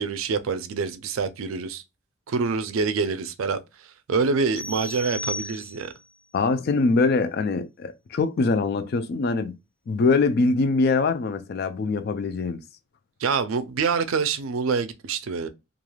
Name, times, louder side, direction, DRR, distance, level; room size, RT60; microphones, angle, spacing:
voice 1, 0.0-1.8 2.3-3.6 4.1-5.9 13.2-15.5, right 5 dB, 85° right, 0.4 m, -26 dB
sound 1, 4.6-6.1, left 2 dB, 15° left, 0.8 m, -35 dB
voice 2, 6.3-9.6 9.9-12.6, left 3 dB, 50° left, 0.3 m, -23 dB
3.1 x 2.4 x 2.2 m
head